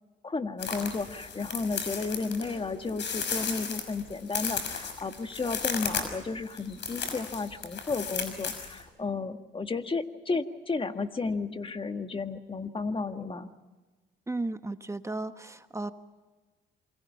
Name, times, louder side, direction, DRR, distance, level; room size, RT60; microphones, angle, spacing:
voice 1, 0.2-13.5, left 4 dB, 25° left, 7 dB, 1.8 m, -33 dB
sound 1, 0.6-8.8, left 6 dB, 65° left, 5.9 m, -35 dB
voice 2, 14.3-15.9, right 2 dB, 15° right, 9 dB, 1.2 m, -34 dB
28.0 x 24.0 x 5.8 m, 1.3 s
cardioid pair, 90°, 20 cm